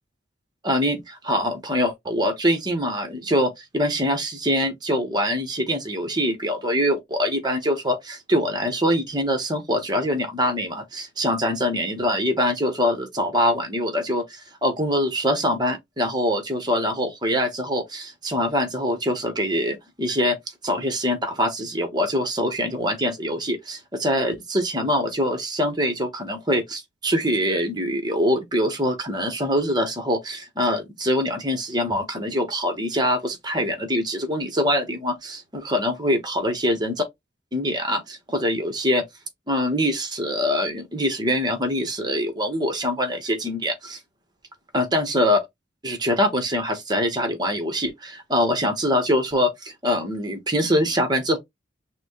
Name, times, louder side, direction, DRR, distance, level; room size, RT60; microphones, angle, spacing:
voice 1, 0.6-20.4 20.6-37.0 37.5-39.0 39.5-44.0 44.7-45.4 45.8-51.4, equal, 20° right, 1.1 m, -24 dB
6.0 x 2.2 x 3.0 m
head